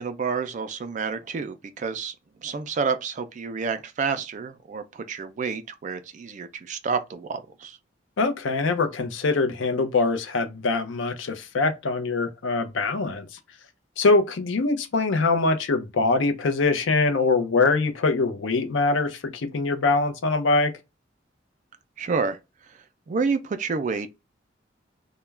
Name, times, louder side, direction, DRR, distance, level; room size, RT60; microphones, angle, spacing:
voice 1, 0.0-2.1 2.4-7.8 22.0-24.1, right 5 dB, 40° right, 0.3 m, -29 dB
voice 2, 8.2-13.4 14.0-20.7, left 3 dB, 90° left, 0.5 m, -23 dB
2.3 x 2.1 x 3.1 m
head